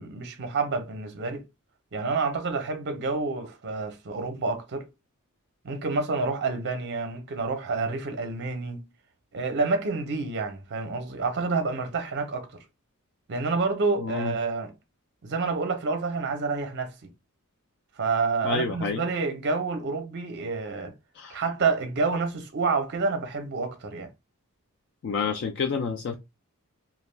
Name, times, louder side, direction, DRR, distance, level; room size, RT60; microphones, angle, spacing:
voice 1, 0.0-1.4 1.9-4.9 5.6-8.8 9.3-12.6 13.3-14.7 15.2-17.1 18.0-20.9 21.3-24.1, right 4 dB, 55° right, 0.5 m, -28 dB
voice 2, 14.0-14.3 18.4-19.0 21.2-21.4 25.0-26.2, left 5 dB, 55° left, 0.3 m, -29 dB
2.3 x 2.2 x 3.1 m
head